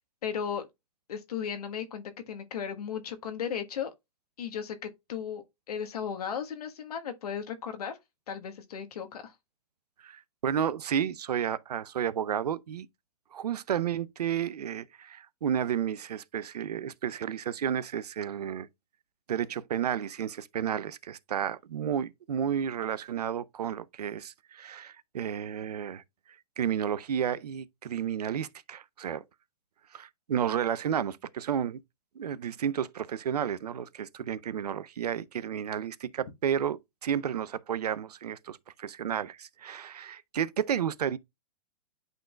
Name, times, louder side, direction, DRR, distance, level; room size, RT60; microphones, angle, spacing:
voice 1, 0.2-0.7 1.1-3.9 4.4-8.0 8.3-9.3, left 7 dB, 75° left, 1.3 m, -36 dB
voice 2, 10.0-12.9 13.3-18.7 19.3-26.0 26.6-29.2 29.9-31.8 32.2-41.2, right 9 dB, 90° right, 0.6 m, -32 dB
11.0 x 3.9 x 2.3 m
hypercardioid pair, 135°, 20 cm